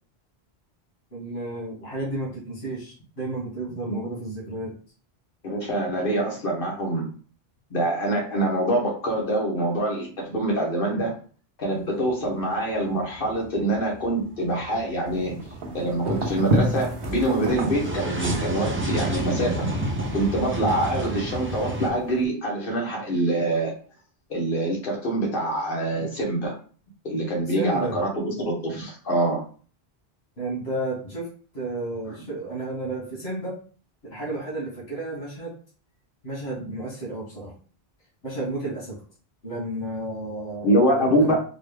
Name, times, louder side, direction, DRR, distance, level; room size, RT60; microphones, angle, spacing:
voice 1, 1.1-4.8 27.5-28.0 30.4-31.3 31.5-33.6 34.0-35.5 36.2-37.5 38.2-39.0 39.4-41.4, right 1 dB, 80° left, -6 dB, 1.8 m, -32 dB
voice 2, 5.4-7.1 7.7-11.1 11.6-15.4 15.7-19.7 20.1-23.7 24.3-26.5 27.0-29.4 32.1-32.2 40.6-41.4, right 1 dB, 60° left, -2 dB, 1.4 m, -25 dB
sound 1, 11.7-12.4 12.7-21.9, right 2 dB, 20° right, 0.4 m, -31 dB
sound 2, 15.1-22.2, right 1 dB, 70° right, 0.9 m, -31 dB
3.9 x 2.3 x 3.3 m, 0.41 s
omnidirectional pair, 1.1 m